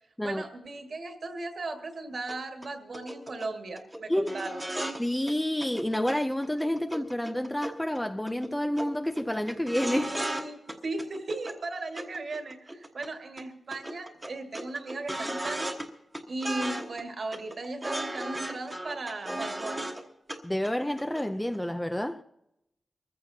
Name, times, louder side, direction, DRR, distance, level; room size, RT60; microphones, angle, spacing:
voice 1, 0.2-4.5 9.9-15.8 16.3-19.9, right 2 dB, 50° right, 1.7 m, -37 dB
sound 1, 2.3-2.4 2.6-2.7 2.9-3.5 3.8-4.0 4.3-5.0 5.3-5.4 5.6-6.2 6.4-8.0 8.3-8.5 8.8-8.9 9.2-10.4 10.7-11.6 12.0-13.1 13.4-13.5 13.7-15.9 16.1-17.0 17.3-20.0 20.3-20.4 20.6-21.2 21.5-21.6, right 1 dB, 10° right, 1.2 m, -35 dB
voice 2, 4.1-4.5 5.0-10.1 20.4-22.2, left 1 dB, 5° left, 0.4 m, -29 dB
24.0 x 15.0 x 2.7 m
wide cardioid pair, 180°, 0 cm